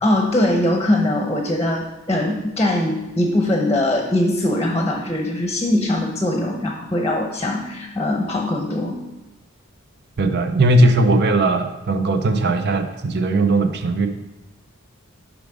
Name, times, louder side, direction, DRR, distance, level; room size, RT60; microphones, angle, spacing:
voice 1, 0.0-8.9, left 1 dB, 15° left, 1 dB, 0.8 m, -21 dB
voice 2, 10.2-14.1, right 2 dB, 55° right, 8 dB, 0.6 m, -18 dB
7.1 x 5.0 x 5.0 m, 1.1 s
head